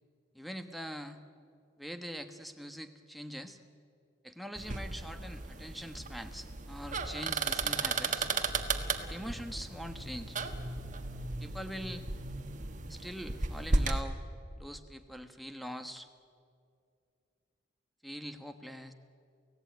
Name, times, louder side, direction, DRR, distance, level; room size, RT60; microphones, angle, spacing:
voice 1, 0.3-1.2 1.8-3.6 4.2-8.3 9.0-10.4 11.4-12.0 12.9-14.2 14.6-16.1 18.0-18.9, equal, ahead, 8 dB, 1.1 m, -43 dB
sound 1, 4.6-14.0, right 3 dB, 40° right, 1.5 m, -35 dB
29.5 x 16.5 x 9.3 m, 2.4 s
head